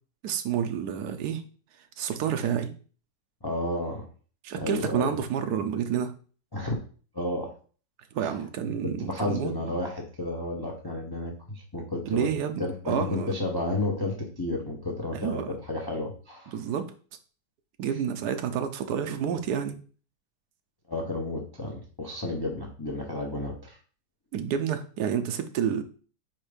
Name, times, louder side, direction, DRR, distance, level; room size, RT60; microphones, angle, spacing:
voice 1, 0.2-1.4 2.0-2.7 4.4-6.1 8.1-9.5 12.1-13.3 15.1-15.5 16.5-16.9 17.8-19.8 24.3-25.8, right 8 dB, 70° right, 7 dB, 1.2 m, -29 dB
voice 2, 3.4-4.1 4.6-5.2 6.5-6.8 7.1-7.5 8.2-8.3 8.8-12.3 12.6-16.6 20.9-23.8, left 2 dB, 20° left, 0 dB, 0.6 m, -32 dB
4.5 x 4.5 x 5.1 m, 0.40 s
omnidirectional pair, 1.9 m